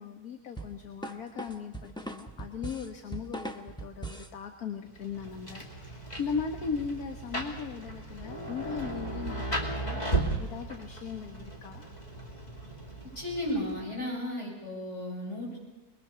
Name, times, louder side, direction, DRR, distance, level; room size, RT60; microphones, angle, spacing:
voice 1, 0.0-10.0 10.4-11.8, left 6 dB, 75° left, 5 dB, 1.8 m, -38 dB
sound 1, 0.6-4.4, right 1 dB, 5° left, 0.9 m, -40 dB
Rain, 4.9-14.0, right 2 dB, 25° left, 2.6 m, -36 dB
voice 2, 13.1-15.6, left 1 dB, 50° left, -3 dB, 8.3 m, -34 dB
22.5 x 21.5 x 6.8 m, 1.1 s
omnidirectional pair, 1.6 m